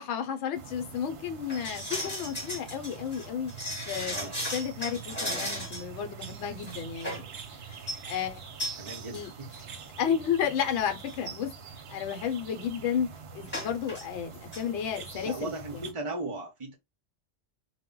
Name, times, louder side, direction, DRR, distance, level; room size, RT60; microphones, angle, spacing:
voice 1, 0.0-3.5 3.9-4.2 4.5-7.2 7.5-8.4 9.1-9.3 10.0-11.5 11.9-13.1 13.3-15.5, left 8 dB, 70° left, 0.9 m, -32 dB
sound 1, 0.5-15.9, right 6 dB, 60° right, 0.8 m, -45 dB
sound 2, 1.5-5.9 6.2-6.3 6.6-7.3 7.7-8.0 8.6-8.8 9.1-9.3 9.5-9.6 10.4-10.5 10.9-11.1 13.5-14.0 14.3-14.6 15.0-15.1, equal, 10° left, 0.9 m, -36 dB
voice 2, 8.8-9.5 15.2-16.7, right 2 dB, 40° right, 0.4 m, -37 dB
2.1 x 2.1 x 3.6 m
omnidirectional pair, 1.3 m